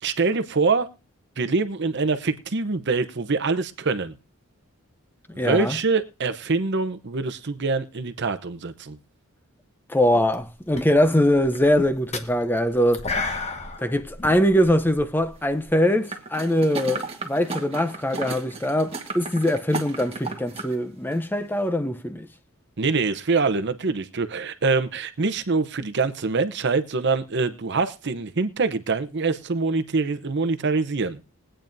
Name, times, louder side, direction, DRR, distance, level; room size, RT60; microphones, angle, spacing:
voice 1, 0.0-0.9 1.4-4.1 5.3-9.0 22.8-31.2, right 4 dB, 55° right, 0.8 m, -24 dB
voice 2, 5.4-5.8 9.9-13.1 13.8-22.3, left 1 dB, 10° left, 0.6 m, -22 dB
sound 1, 10.1-10.5 10.7-15.7, left 3 dB, 30° left, 1.1 m, -33 dB
sound 2, 16.1-20.7 21.1-21.2, right 3 dB, 25° right, 1.5 m, -34 dB
22.0 x 8.9 x 2.6 m
head